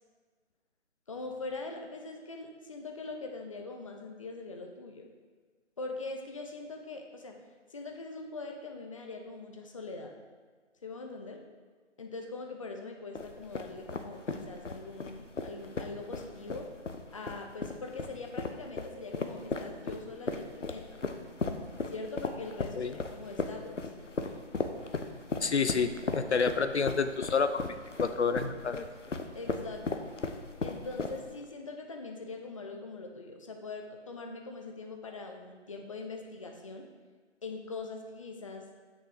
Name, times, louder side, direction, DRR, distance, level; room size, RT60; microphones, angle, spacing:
voice 1, 1.1-5.1 5.8-7.4 7.7-10.2 10.8-11.4 12.0-16.7 17.1-21.0 21.9-23.8 29.3-30.1 30.6-36.9 37.4-38.7, left 3 dB, 25° left, 3 dB, 0.7 m, -42 dB
sound 1, 13.1-31.4, left 3 dB, 85° left, 0.9 m, -36 dB
voice 2, 25.4-28.8, left 5 dB, 65° left, 10 dB, 0.6 m, -29 dB
8.7 x 6.4 x 4.9 m, 1.5 s
figure-of-eight pair, 150°, 36 cm